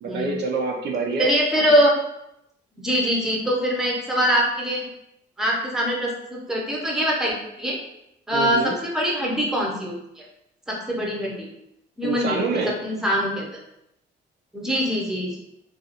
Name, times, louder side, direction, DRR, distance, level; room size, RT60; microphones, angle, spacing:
voice 1, 0.0-1.7 8.3-8.7 12.0-12.8, right 3 dB, 60° right, 0 dB, 0.5 m, -26 dB
voice 2, 1.2-1.9 2.8-4.9 5.4-7.8 8.3-9.9 10.7-11.5 12.0-12.4 12.8-13.5 14.5-15.4, equal, ahead, -3 dB, 0.7 m, -23 dB
2.4 x 2.3 x 2.8 m, 0.82 s
cardioid pair, 90°, 20 cm